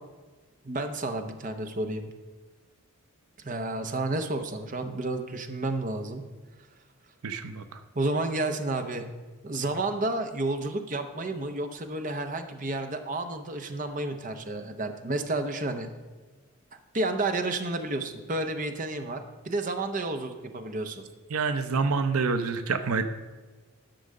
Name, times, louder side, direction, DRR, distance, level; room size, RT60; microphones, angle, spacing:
voice 1, 0.6-2.1 3.4-6.2 7.9-9.0 9.4-15.9 16.9-19.2 19.4-21.0, right 2 dB, 35° right, 6 dB, 0.8 m, -31 dB
voice 2, 7.2-7.8 21.3-23.1, right 4 dB, 80° right, 10 dB, 0.6 m, -27 dB
11.5 x 6.3 x 6.5 m, 1.3 s
head